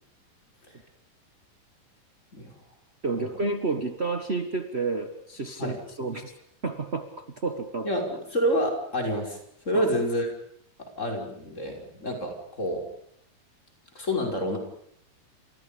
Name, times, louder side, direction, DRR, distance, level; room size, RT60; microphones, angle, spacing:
voice 1, 3.0-6.3 6.6-7.9 9.7-9.9, right 3 dB, 50° right, 7 dB, 0.7 m, -30 dB
voice 2, 7.8-9.4 9.7-10.3 10.8-12.9 13.9-14.6, equal, 20° left, 2 dB, 5.7 m, -28 dB
30.0 x 28.0 x 5.2 m, 0.69 s
omnidirectional pair, 3.8 m